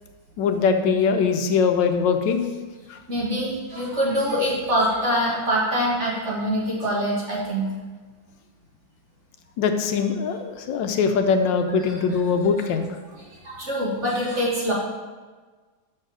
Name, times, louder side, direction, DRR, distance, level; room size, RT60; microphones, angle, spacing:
voice 1, 0.4-2.4 2.9-3.0 9.6-12.9, left 5 dB, 80° left, 6 dB, 1.3 m, -22 dB
voice 2, 3.1-7.7 11.8-11.9 13.2-14.7, equal, 40° right, -6 dB, 1.9 m, -24 dB
6.3 x 4.5 x 6.2 m, 1.4 s
omnidirectional pair, 2.0 m